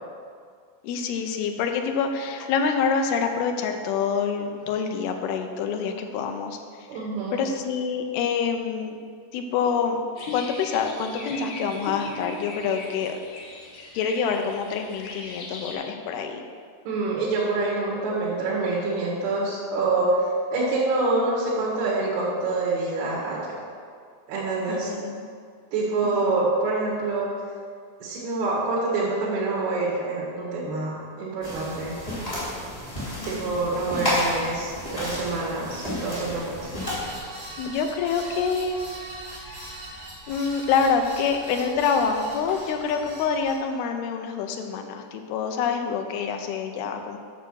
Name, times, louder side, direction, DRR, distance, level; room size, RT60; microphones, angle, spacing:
voice 1, 0.8-6.6 6.9-9.0 9.3-10.0 10.3-13.2 13.9-16.4 24.7-25.3 26.0-26.4 33.2-33.5 37.6-38.8 39.3-39.6 40.3-47.2, left 6 dB, 85° left, 5 dB, 2.7 m, -26 dB
voice 2, 6.9-7.4 16.9-20.2 20.5-23.4 24.3-24.9 25.7-27.3 28.0-32.0 33.3-36.7, right 3 dB, 80° right, -6 dB, 3.6 m, -26 dB
sound 1, 10.2-15.7, left 2 dB, 60° left, 2.4 m, -38 dB
sound 2, 31.4-37.2, left 1 dB, 10° left, 2.3 m, -31 dB
sound 3, 36.8-43.6, right 1 dB, 40° right, 3.8 m, -41 dB
9.1 x 6.6 x 6.3 m, 2.1 s
omnidirectional pair, 4.5 m